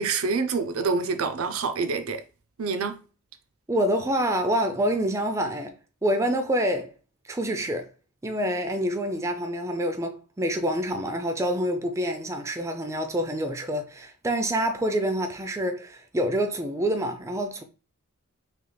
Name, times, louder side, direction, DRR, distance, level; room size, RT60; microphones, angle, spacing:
voice 1, 0.0-2.2 2.6-3.0, right 4 dB, 70° right, 0.5 m, -26 dB
voice 2, 3.7-5.8 6.0-6.9 7.3-7.9 8.2-17.6, equal, 15° right, 0.4 m, -27 dB
3.3 x 2.9 x 3.8 m
head